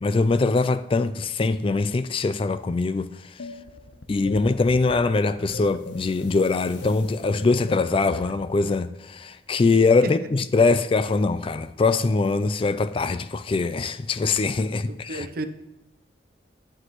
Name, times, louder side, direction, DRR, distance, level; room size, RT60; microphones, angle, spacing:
voice 1, 0.0-3.3 4.1-15.3, left 3 dB, 30° left, 0.3 m, -22 dB
sound 1, 3.4-8.5, left 2 dB, 90° left, 0.8 m, -40 dB
voice 2, 14.9-15.4, right 2 dB, 55° right, 0.7 m, -32 dB
11.5 x 9.6 x 3.1 m
head